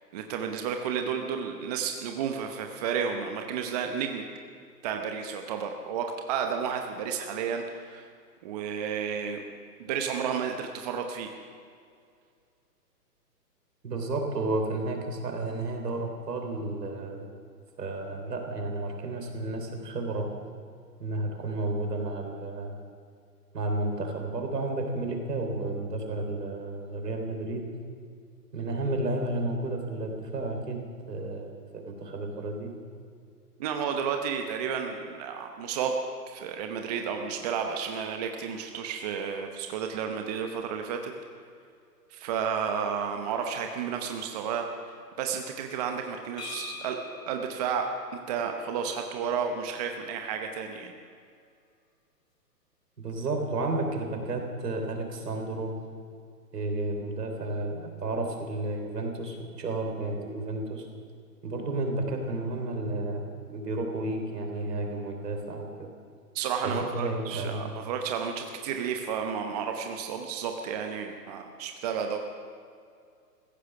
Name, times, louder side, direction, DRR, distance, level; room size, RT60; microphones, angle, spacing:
voice 1, 0.1-4.2 4.8-8.1 8.4-9.4 9.8-11.3 33.6-35.9 36.3-41.1 42.1-47.0 47.3-47.9 48.3-50.9 66.3-72.2, right 7 dB, 25° right, 4 dB, 0.9 m, -32 dB
voice 2, 13.8-17.3 17.8-20.3 21.0-22.8 23.5-27.6 28.5-32.7 53.0-55.7 56.5-60.9 61.4-65.9 66.6-67.8, right 2 dB, 70° right, 3 dB, 3.6 m, -32 dB
sound 1, 46.4-50.2, left 6 dB, 75° left, 3.1 m, -46 dB
16.0 x 15.0 x 5.9 m, 2.3 s
hypercardioid pair, 140°, 49 cm